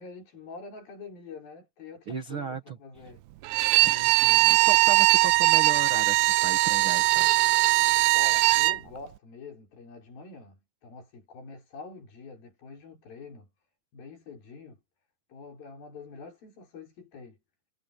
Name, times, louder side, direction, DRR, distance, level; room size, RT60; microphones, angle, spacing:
voice 1, 0.0-3.2 8.1-13.5 13.9-14.8 15.3-17.4, left 4 dB, 60° left, 7.3 m, -45 dB
voice 2, 2.1-2.8 3.8-7.4, right 5 dB, 75° right, 1.2 m, -36 dB
Bowed string instrument, 3.5-8.8, right 18 dB, 90° right, 2.7 m, -21 dB
omnidirectional pair, 4.8 m